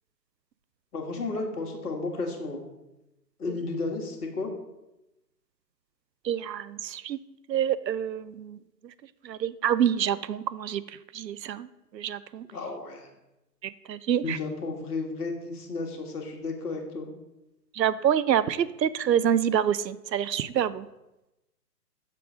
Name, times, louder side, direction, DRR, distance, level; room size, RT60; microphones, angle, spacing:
voice 1, 0.9-2.7 3.4-4.5 12.4-13.1 14.2-17.1, left 3 dB, 65° left, 1 dB, 1.7 m, -33 dB
voice 2, 6.2-7.2 7.5-8.6 9.2-10.8 11.1-11.7 11.9-12.5 13.6-14.4 17.7-20.9, right 9 dB, 80° right, 17 dB, 0.5 m, -27 dB
6.6 x 3.7 x 6.2 m, 0.96 s
figure-of-eight pair, 135°, 50 cm